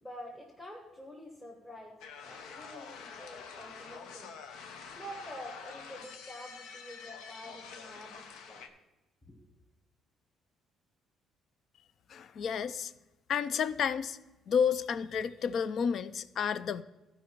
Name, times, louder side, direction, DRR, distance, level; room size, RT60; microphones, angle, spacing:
voice 1, 0.0-4.3 5.0-8.6 9.3-9.5, equal, 15° left, -3 dB, 1.4 m, -47 dB
sound 1, 2.0-8.7, left 6 dB, 85° left, 0.9 m, -47 dB
voice 2, 12.1-12.9 13.3-14.2 14.5-16.8, left 7 dB, 50° left, 16 dB, 0.4 m, -31 dB
14.5 x 5.2 x 4.6 m, 1.0 s
cardioid pair, 140°, 0 cm